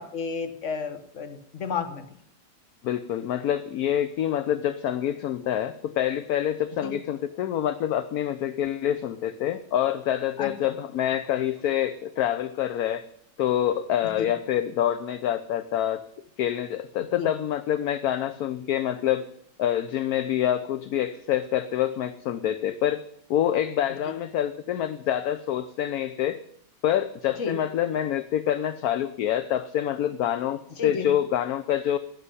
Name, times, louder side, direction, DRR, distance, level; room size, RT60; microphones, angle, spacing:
voice 1, 0.0-2.1 6.8-6.9 10.4-10.8 14.2-14.3 17.2-17.3 24.0-24.1 27.4-27.6 30.8-31.1, left 5 dB, 45° left, 8 dB, 1.5 m, -32 dB
voice 2, 2.8-13.0 13.4-16.0 16.4-19.3 19.6-23.0 23.3-26.4 26.8-32.0, left 11 dB, 65° left, 12 dB, 1.0 m, -26 dB
11.0 x 7.8 x 9.8 m, 0.69 s
omnidirectional pair, 1.9 m